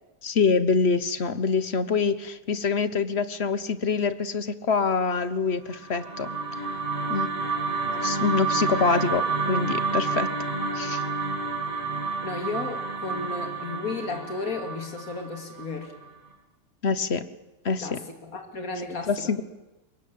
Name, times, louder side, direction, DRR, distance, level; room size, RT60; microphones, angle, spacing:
voice 1, 0.2-6.3 7.1-7.3 7.9-10.3 10.7-11.0 16.8-17.3 17.6-18.0 18.9-19.4, left 5 dB, 50° left, 13 dB, 1.3 m, -25 dB
sound 1, 5.7-16.0, right 4 dB, 35° right, 5.4 m, -29 dB
voice 2, 12.2-15.9 17.8-19.3, left 3 dB, 75° left, 4 dB, 3.0 m, -34 dB
24.0 x 21.0 x 8.5 m, 1.0 s
omnidirectional pair, 1.5 m